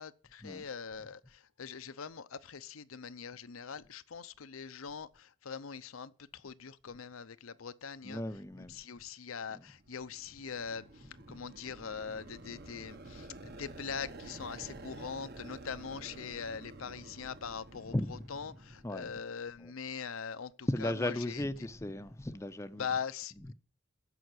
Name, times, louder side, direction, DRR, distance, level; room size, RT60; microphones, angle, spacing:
voice 1, 0.0-8.2 8.6-21.4 22.8-23.5, left 6 dB, 90° left, 0.7 m, -42 dB
voice 2, 8.0-8.8 17.9-18.3 18.8-19.1 20.7-22.8, left 1 dB, 15° left, 0.6 m, -35 dB
sound 1, 9.7-19.5, right 2 dB, 50° right, 1.2 m, -50 dB
14.0 x 5.7 x 8.0 m
head